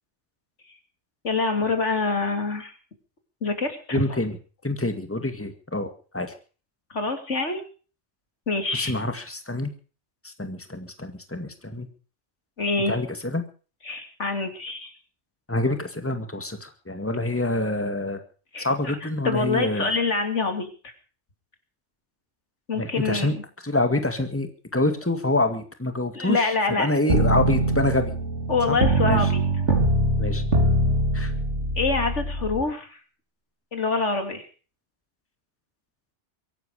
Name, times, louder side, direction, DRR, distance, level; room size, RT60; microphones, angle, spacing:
voice 1, 1.2-2.7 3.4-4.0 6.9-7.6 8.5-8.9 12.6-13.0 13.8-14.9 18.5-19.0 19.2-20.7 22.7-23.4 26.1-26.9 28.5-29.4 31.8-33.0 33.7-34.4, left 3 dB, 90° left, 6 dB, 3.3 m, -25 dB
voice 2, 3.9-4.4 4.6-6.3 8.7-9.7 10.2-11.9 12.9-13.5 15.5-18.2 18.6-19.9 22.8-23.3 23.6-28.1 28.7-29.3 30.2-30.4 31.1-31.3, left 2 dB, 10° left, 7 dB, 2.1 m, -26 dB
sound 1, 27.1-32.6, right 1 dB, 85° right, 3.5 m, -23 dB
23.5 x 11.5 x 5.0 m, 0.39 s
omnidirectional pair, 1.2 m